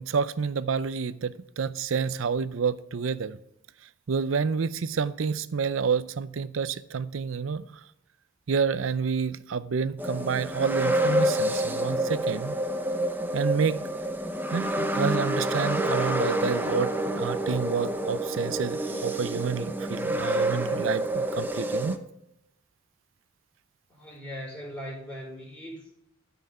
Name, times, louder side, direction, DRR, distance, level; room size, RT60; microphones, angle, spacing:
voice 1, 0.0-3.4 4.1-7.7 8.5-12.6 13.3-13.8 14.5-22.0, right 5 dB, 70° right, 0.5 m, -29 dB
sound 1, 10.0-22.0, right 1 dB, 10° right, 0.6 m, -28 dB
voice 2, 23.9-25.9, equal, 15° left, 4.1 m, -39 dB
12.5 x 5.7 x 4.3 m
head